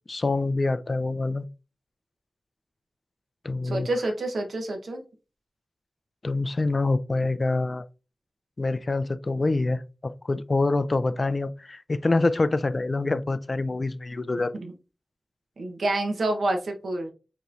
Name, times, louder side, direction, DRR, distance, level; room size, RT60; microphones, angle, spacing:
voice 1, 0.1-1.4 3.4-3.9 6.2-7.8 8.6-14.5, left 2 dB, 45° left, 0.4 m, -26 dB
voice 2, 3.6-5.0 14.5-14.7 15.6-17.1, right 2 dB, 80° right, 1.0 m, -28 dB
5.3 x 3.0 x 2.5 m
wide cardioid pair, 65°, 0 cm